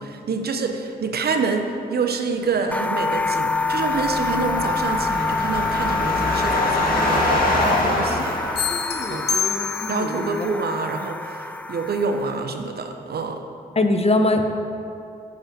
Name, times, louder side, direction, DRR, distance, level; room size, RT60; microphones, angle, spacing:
voice 1, 0.0-8.4 9.1-9.3 9.9-13.4, right 4 dB, 65° right, 5 dB, 0.9 m, -27 dB
sound 1, 2.7-12.4, left 4 dB, 10° left, 0.4 m, -27 dB
sound 2, 3.0-9.3, left 1 dB, 55° left, 2.0 m, -25 dB
voice 2, 7.7-8.3 8.7-10.5 13.7-14.4, left 2 dB, 35° left, 5 dB, 1.0 m, -24 dB
sound 3, 8.6-10.2, left 7 dB, 75° left, 0.8 m, -26 dB
8.7 x 5.4 x 7.6 m, 2.6 s
supercardioid pair, 45°, 17 cm